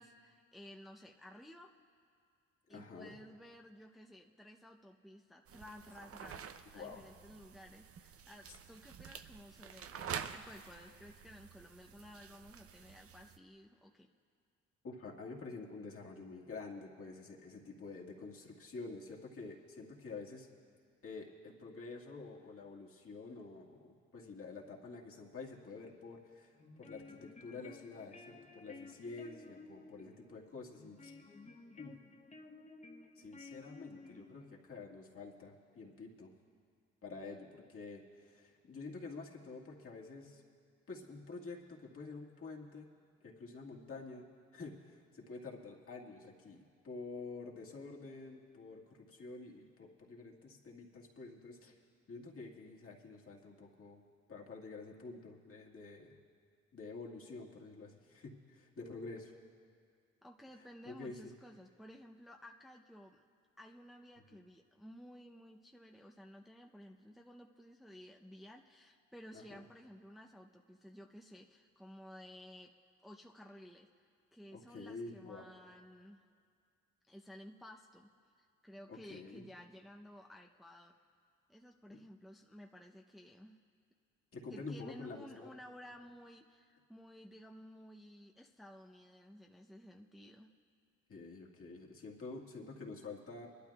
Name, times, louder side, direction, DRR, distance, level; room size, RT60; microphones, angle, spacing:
voice 1, 0.0-1.7 2.7-14.1 60.2-63.2 63.6-72.7 73.0-73.9 74.3-76.2 77.1-78.1 78.4-81.0 81.5-83.6 84.5-90.5, equal, ahead, 0 dB, 0.7 m, -55 dB
voice 2, 2.7-3.2 6.7-7.0 8.5-8.6 14.8-20.5 21.0-31.1 31.8-31.9 33.2-36.3 37.0-40.4 40.9-42.9 43.2-44.3 44.5-51.7 52.1-54.0 54.3-56.2 56.7-59.3 60.8-61.3 69.3-69.6 74.5-75.5 78.9-79.5 81.9-82.0 84.3-85.5 91.1-93.5, left 3 dB, 50° left, -2 dB, 2.0 m, -48 dB
sound 1, 5.5-13.4, right 7 dB, 50° right, 0.7 m, -48 dB
sound 2, 26.6-34.6, left 3 dB, 25° left, 1.0 m, -55 dB
23.5 x 12.0 x 2.4 m, 2.2 s
supercardioid pair, 60°, 29 cm